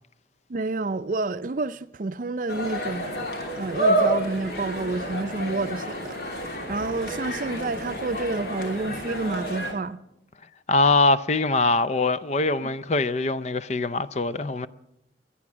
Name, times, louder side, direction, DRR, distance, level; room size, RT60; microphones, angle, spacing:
voice 1, 0.5-3.3 3.5-10.0, right 3 dB, 50° right, 0.5 m, -29 dB
sound 1, 2.5-9.7, right 1 dB, 60° left, 3.0 m, -29 dB
voice 2, 10.7-14.7, left 3 dB, 40° left, 0.5 m, -23 dB
22.5 x 8.6 x 6.1 m
head